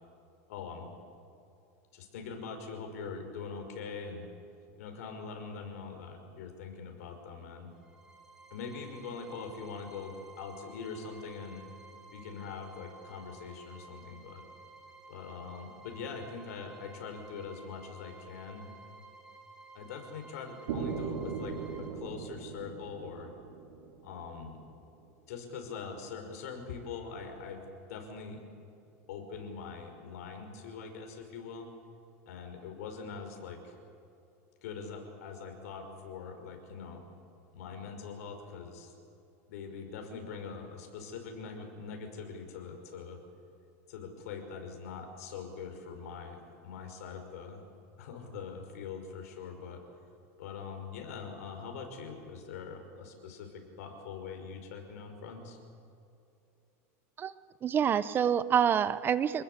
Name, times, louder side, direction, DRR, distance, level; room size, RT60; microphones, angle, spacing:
voice 1, 0.5-0.9 1.9-4.3 4.8-7.7 8.5-11.7 12.1-14.4 15.1-18.7 19.7-23.3 24.0-24.6 25.3-27.6 27.9-28.4 29.1-31.7 32.3-33.7 34.6-37.0 37.5-38.9 39.5-43.2 43.9-47.6 48.0-49.8 50.4-55.6, left 5 dB, 80° left, 4 dB, 5.7 m, -43 dB
sound 1, 7.7-21.9, right 3 dB, 10° right, 4.3 m, -54 dB
sound 2, 20.7-24.6, right 6 dB, 85° right, 4.0 m, -39 dB
voice 2, 57.6-59.4, right 8 dB, 25° right, 15 dB, 0.7 m, -27 dB
28.0 x 19.5 x 8.2 m, 2.7 s
supercardioid pair, 145°, 8 cm